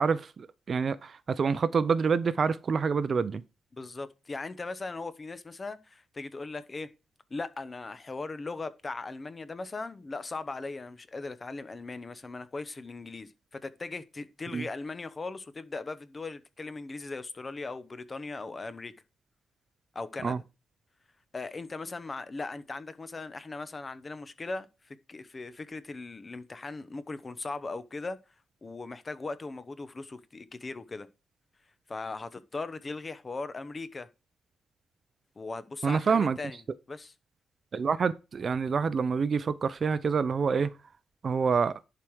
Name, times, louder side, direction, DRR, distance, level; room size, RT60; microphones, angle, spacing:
voice 1, 0.0-3.4 14.5-14.7 20.2-20.4 35.8-36.4 37.7-40.7 41.2-41.8, right 5 dB, 40° right, 0.6 m, -27 dB
voice 2, 3.7-6.9 7.3-18.9 19.9-20.4 21.3-28.2 28.6-31.1 31.9-34.1 35.4-36.6 36.9-37.1, left 3 dB, 25° left, 0.9 m, -39 dB
11.0 x 4.9 x 4.7 m
cardioid pair, 130°, 0 cm